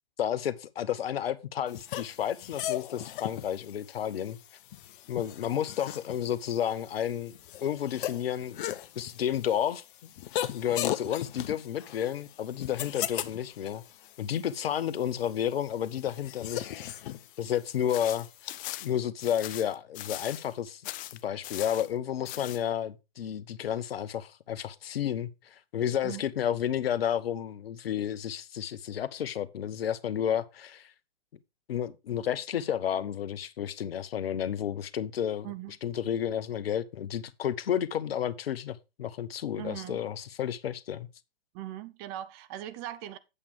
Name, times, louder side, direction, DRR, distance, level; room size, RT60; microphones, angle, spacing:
voice 1, 0.2-4.4 5.1-7.4 7.6-8.6 8.9-10.1 10.5-13.8 14.2-16.8 17.4-18.3 18.8-20.8 21.2-30.9 31.7-35.5 35.8-41.1, left 9 dB, 75° left, 1.0 m, -31 dB
sound 1, 1.7-18.5, left 12 dB, 60° left, 0.9 m, -39 dB
sound 2, 17.9-20.5 20.8-21.9 22.2-22.6, left 16 dB, 25° left, 0.5 m, -40 dB
voice 2, 35.4-35.8 39.6-40.0 41.5-43.2, right 13 dB, 40° right, 1.1 m, -39 dB
8.8 x 8.4 x 3.3 m
hypercardioid pair, 115°, 30 cm